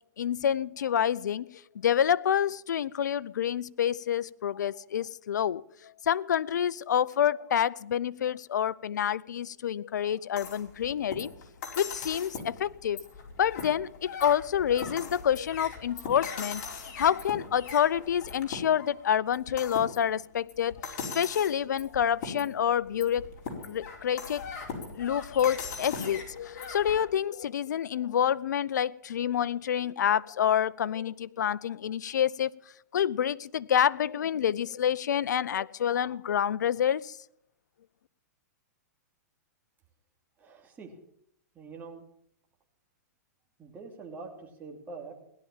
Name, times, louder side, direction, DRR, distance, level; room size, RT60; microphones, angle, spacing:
voice 1, 0.2-1.5 1.8-5.6 6.1-11.3 11.8-13.0 13.4-23.3 23.7-24.4 25.0-32.5 32.9-37.2, left 9 dB, 80° left, 19 dB, 0.6 m, -28 dB
sound 1, 10.4-27.0, left 5 dB, 45° left, 4.9 m, -40 dB
voice 2, 40.4-40.9 41.5-42.0 43.6-45.1, right 4 dB, 20° right, 1 dB, 2.8 m, -44 dB
17.5 x 11.5 x 7.3 m, 0.71 s
hypercardioid pair, 135°, 10 cm